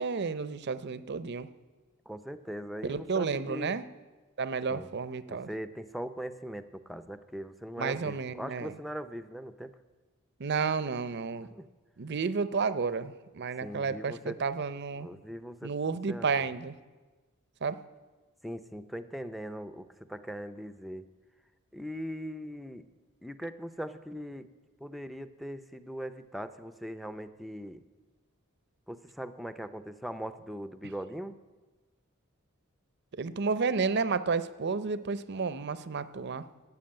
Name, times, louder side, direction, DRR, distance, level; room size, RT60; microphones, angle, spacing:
voice 1, 0.0-1.5 2.9-3.8 4.4-5.5 7.8-8.7 10.4-11.5 12.0-15.1 15.6-16.7 17.6-17.8 33.1-36.4, right 5 dB, 55° right, 14 dB, 0.6 m, -31 dB
voice 2, 2.1-3.8 4.7-4.9 5.3-9.8 11.5-11.7 13.6-14.4 15.0-16.5 18.4-21.0 21.7-22.9 23.2-24.5 24.8-27.8 28.9-31.4, equal, ahead, 11 dB, 0.5 m, -40 dB
13.0 x 8.3 x 8.9 m, 1.3 s
head